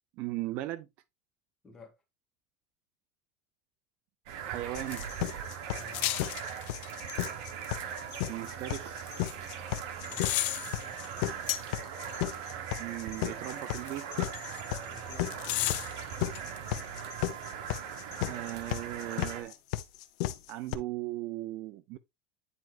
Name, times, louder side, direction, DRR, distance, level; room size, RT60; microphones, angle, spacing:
voice 1, 0.2-0.9 4.5-5.0 8.3-9.1 12.8-14.1 18.3-19.6 20.5-22.0, right 16 dB, 50° right, 0.5 m, -37 dB
sound 1, 4.3-19.4, right 8 dB, 65° right, 1.7 m, -40 dB
sound 2, 4.7-20.7, left 14 dB, 70° left, 0.9 m, -34 dB
sound 3, 4.9-5.3 5.8-7.3 7.6-7.7 9.1-9.3 10.0-12.4 13.5-14.9 15.3-16.6 16.8-16.9, left 19 dB, 50° left, 0.4 m, -35 dB
voice 2, 5.7-6.2 10.1-11.1 14.9-16.0, left 3 dB, 15° left, 2.0 m, -52 dB
9.7 x 4.6 x 2.5 m
cardioid pair, 160°, 4 cm